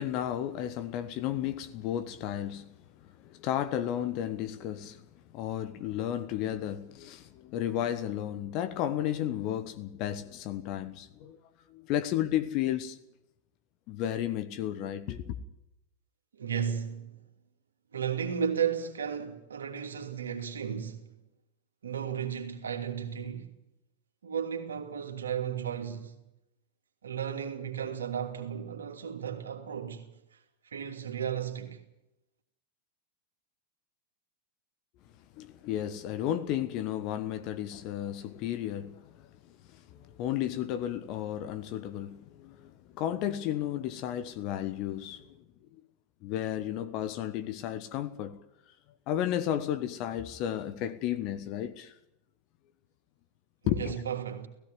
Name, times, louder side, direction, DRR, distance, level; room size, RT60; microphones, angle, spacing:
voice 1, 0.0-2.7 3.0-5.0 5.3-11.4 11.7-13.0 13.9-15.4 35.4-39.3 39.7-45.4 46.2-48.4 49.1-51.9 53.7-54.0, left 11 dB, 40° left, 1.3 m, -33 dB
voice 2, 16.3-17.2 17.9-21.0 21.8-23.5 24.2-26.1 27.0-30.1 30.6-31.8 53.6-54.5, right 8 dB, 70° right, 2.8 m, -34 dB
17.0 x 16.5 x 9.5 m
figure-of-eight pair, 90°, 0 cm